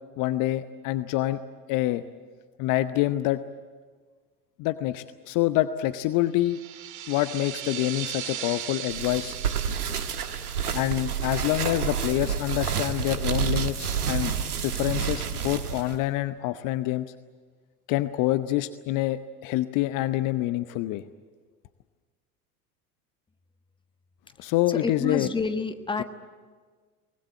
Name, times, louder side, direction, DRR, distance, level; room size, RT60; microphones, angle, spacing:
voice 1, 0.2-1.4 1.7-2.0 2.6-3.4 4.6-6.6 7.1-9.4 10.7-14.3 14.6-17.1 17.9-21.0 24.4-25.3, left 15 dB, 45° left, 13 dB, 0.8 m, -26 dB
sound 1, 6.4-12.7, right 11 dB, 40° right, 1.9 m, -39 dB
sound 2, 8.9-16.0, right 7 dB, 80° right, 1.4 m, -29 dB
voice 2, 24.4-26.0, left 4 dB, 10° left, 9 dB, 1.3 m, -30 dB
24.5 x 19.5 x 9.0 m, 1.5 s
figure-of-eight pair, 70°, 45 cm